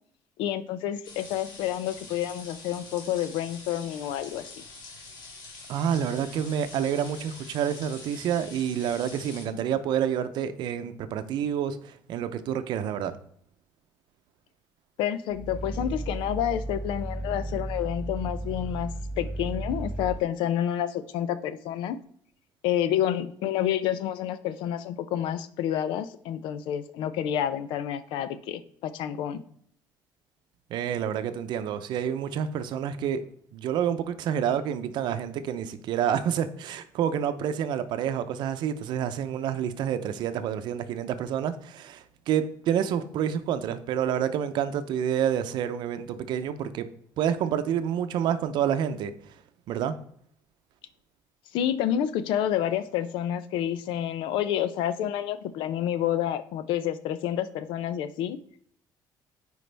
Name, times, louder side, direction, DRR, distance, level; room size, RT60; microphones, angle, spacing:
voice 1, 0.4-4.5 15.0-22.0 22.6-29.4 51.5-58.4, left 10 dB, 90° left, 0.6 m, -29 dB
sound 1, 1.0-9.5, left 3 dB, 60° left, 2.4 m, -45 dB
voice 2, 5.7-13.2 30.7-33.2 33.5-46.9 47.2-49.1 49.7-50.0, right 9 dB, 65° right, 0.6 m, -28 dB
Growling, 15.3-20.3, right 1 dB, 10° right, 0.3 m, -34 dB
9.3 x 4.8 x 3.4 m
cardioid pair, 155°, 8 cm